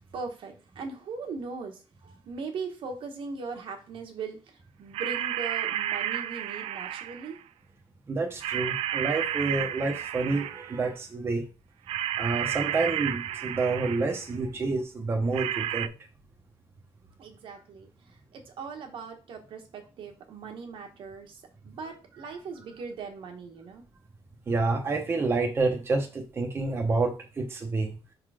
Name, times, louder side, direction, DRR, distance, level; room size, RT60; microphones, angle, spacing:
voice 1, 0.1-1.8 2.2-4.4 4.8-7.4 17.2-17.9 18.3-21.4 21.6-23.8, right 4 dB, 60° right, 3 dB, 1.3 m, -39 dB
sound 1, 4.9-7.4 8.4-10.8 11.9-14.3 15.3-15.9, right 11 dB, 90° right, 0.4 m, -32 dB
voice 2, 8.1-11.5 11.9-15.9 24.5-27.9, right 3 dB, 25° right, 1 dB, 0.9 m, -28 dB
5.4 x 3.9 x 4.9 m, 0.33 s
cardioid pair, 165°, 10 cm